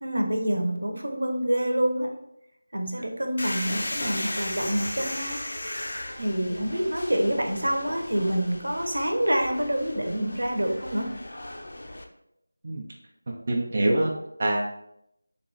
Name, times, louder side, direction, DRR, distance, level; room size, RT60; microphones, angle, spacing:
voice 1, 0.0-2.1 2.7-5.4 6.2-11.1, right 1 dB, 85° right, 3 dB, 0.8 m, -27 dB
sound 1, 3.4-12.0, left 1 dB, 50° left, 0.4 m, -36 dB
voice 2, 13.5-14.6, right 1 dB, 30° right, -1 dB, 0.4 m, -25 dB
3.0 x 2.3 x 3.9 m, 0.79 s
figure-of-eight pair, 175°, 0 cm